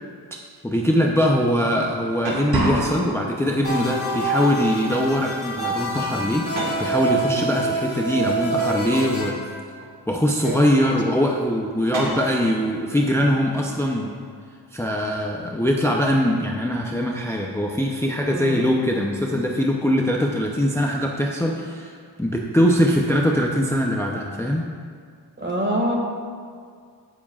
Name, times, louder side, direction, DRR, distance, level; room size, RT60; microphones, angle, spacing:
voice 1, 0.6-9.5 10.1-14.1 14.7-24.7, equal, 5° left, 0 dB, 0.6 m, -22 dB
sound 1, 1.9-2.6 3.7-4.4 4.8-5.1 5.5-7.0 7.8-7.9 9.1-10.0 11.7-12.4, right 2 dB, 85° right, 1.7 m, -35 dB
sound 2, 2.5-3.5, right 1 dB, 50° right, 2.5 m, -25 dB
sound 3, 3.6-9.3, right 2 dB, 30° left, 2.5 m, -26 dB
voice 2, 10.4-10.7 18.3-18.6 25.4-25.9, right 1 dB, 25° right, 0 dB, 1.9 m, -25 dB
17.0 x 7.1 x 2.4 m, 2.1 s
cardioid pair, 90°, 46 cm